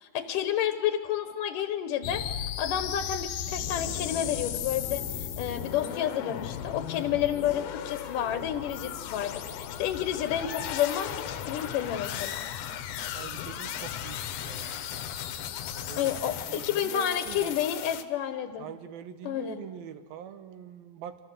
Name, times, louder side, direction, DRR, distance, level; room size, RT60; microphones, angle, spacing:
voice 1, 0.0-12.5 16.0-18.7 19.2-19.6, left 10 dB, 70° left, 10 dB, 2.6 m, -30 dB
sound 1, 2.0-18.0, left 10 dB, 90° left, 3.1 m, -36 dB
sound 2, 7.1-16.0, left 5 dB, 55° right, 9.0 m, -50 dB
sound 3, 10.3-10.8 11.1-16.4, left 8 dB, 55° left, 2.4 m, -42 dB
voice 2, 13.1-14.7 15.7-16.1 16.4-17.5 18.6-21.2, right 9 dB, 90° right, 11 dB, 3.3 m, -43 dB
29.5 x 25.0 x 8.0 m, 1.4 s
omnidirectional pair, 4.1 m